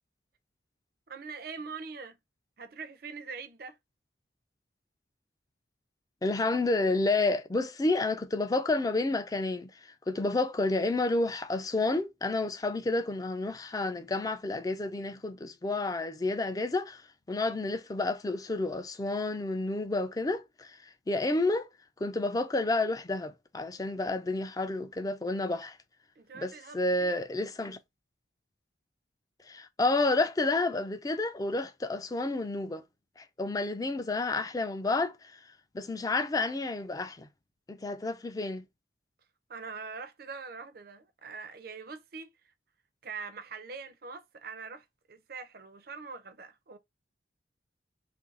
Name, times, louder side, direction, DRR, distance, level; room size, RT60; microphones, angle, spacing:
voice 1, 1.1-2.2 2.6-3.8 26.2-27.2 39.5-42.3 43.0-46.8, right 5 dB, 50° right, 0.5 m, -43 dB
voice 2, 6.2-17.0 17.3-21.7 22.0-25.8 26.3-27.8 29.5-32.8 33.2-35.4 35.7-37.3 37.7-38.6, left 2 dB, 20° left, 0.3 m, -30 dB
2.7 x 2.6 x 3.8 m
head